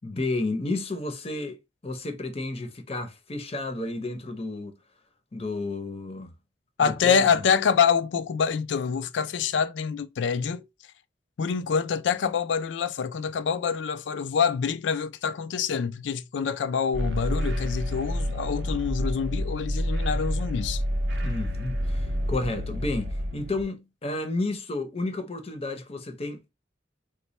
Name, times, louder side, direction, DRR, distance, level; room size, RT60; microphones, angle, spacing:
voice 1, 0.0-1.6 1.8-4.8 5.3-6.3 6.8-7.2 21.2-26.5, left 2 dB, 30° left, 0.7 m, -31 dB
voice 2, 6.8-10.7 11.4-20.8, left 6 dB, 70° left, 0.4 m, -26 dB
sound 1, 16.9-23.6, equal, 75° right, 0.6 m, -29 dB
3.1 x 2.2 x 4.0 m
head